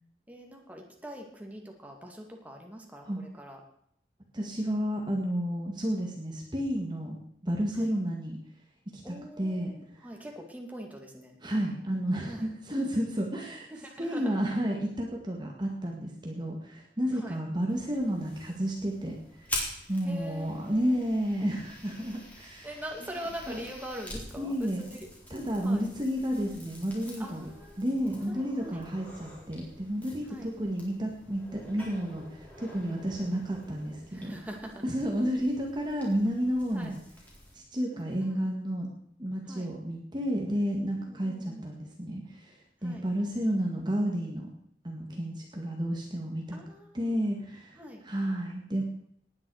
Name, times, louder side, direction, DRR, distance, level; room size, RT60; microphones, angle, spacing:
voice 1, 0.3-3.6 7.7-7.9 9.0-11.4 12.3-12.5 13.7-14.7 17.1-17.4 20.0-21.1 22.6-25.1 25.6-25.9 27.2-27.8 28.3-28.8 30.3-30.5 34.1-34.8 36.7-37.0 37.9-38.5 39.5-39.7 41.0-41.7 42.8-43.1 46.5-47.2 47.8-48.0, equal, 10° right, 1 dB, 2.3 m, -43 dB
voice 2, 4.3-7.2 7.4-8.4 8.9-9.7 11.4-13.7 14.0-19.6 19.9-22.7 23.0-23.1 23.5-23.6 24.4-24.8 25.3-27.5 27.8-34.3 34.8-37.0 37.5-38.9 39.2-44.5 44.8-46.6 46.9-48.8, equal, 25° right, 0 dB, 1.9 m, -31 dB
sound 1, 17.7-37.6, left 1 dB, 10° left, 4.2 m, -46 dB
19.0 x 9.8 x 4.9 m, 0.70 s
head